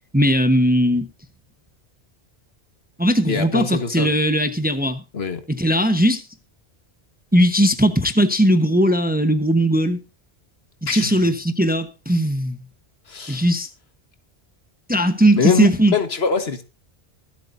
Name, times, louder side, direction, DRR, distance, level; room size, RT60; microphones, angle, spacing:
voice 1, 0.1-1.1 3.0-5.0 5.5-6.2 7.3-10.0 10.9-12.6 13.3-13.7 14.9-15.9, equal, 10° right, 0.9 m, -18 dB
voice 2, 3.3-4.1 5.1-5.4 10.9-11.3 13.1-13.4 15.3-16.6, left 5 dB, 65° left, 1.7 m, -23 dB
23.5 x 8.2 x 2.7 m
omnidirectional pair, 1.1 m